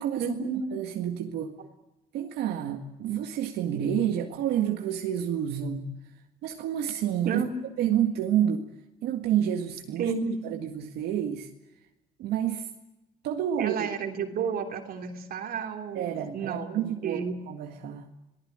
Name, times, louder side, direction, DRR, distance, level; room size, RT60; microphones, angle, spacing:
voice 1, 0.2-0.6 7.2-7.6 10.0-10.4 13.6-17.4, right 6 dB, 60° right, 4 dB, 3.2 m, -31 dB
voice 2, 0.7-1.6 2.1-5.9 6.4-7.4 7.8-8.7 9.0-10.1 10.4-11.5 12.2-12.7 13.2-13.9 15.9-18.1, right 10 dB, 80° right, 3 dB, 1.9 m, -29 dB
27.0 x 18.5 x 8.8 m, 0.98 s
cardioid pair, 110°, 17 cm